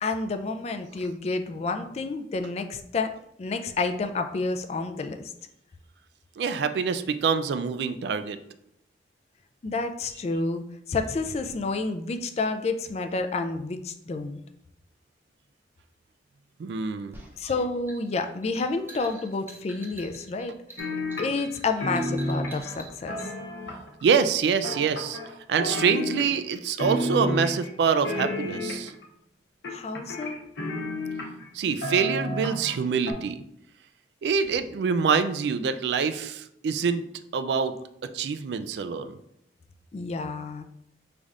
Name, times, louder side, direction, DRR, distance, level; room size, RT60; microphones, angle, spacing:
voice 1, 0.0-3.1 3.4-5.3 9.6-14.4 17.4-20.5 21.2-23.2 29.7-30.4 39.9-40.6, left 3 dB, 35° left, 7 dB, 0.3 m, -29 dB
voice 2, 6.4-8.4 16.6-17.2 24.0-25.2 25.5-28.9 31.5-33.4 34.2-37.0 37.3-37.7 38.1-39.1, right 6 dB, 65° right, 10 dB, 0.3 m, -25 dB
sound 1, 17.1-23.3, right 1 dB, 10° right, 0.6 m, -46 dB
sound 2, 20.8-21.6 21.8-24.0 24.6-25.3 25.6-26.5 26.8-27.7 28.0-29.0 29.6-31.5 31.8-32.8 33.1-33.2, left 1 dB, 80° left, 0.8 m, -31 dB
5.2 x 3.3 x 2.4 m, 0.76 s
head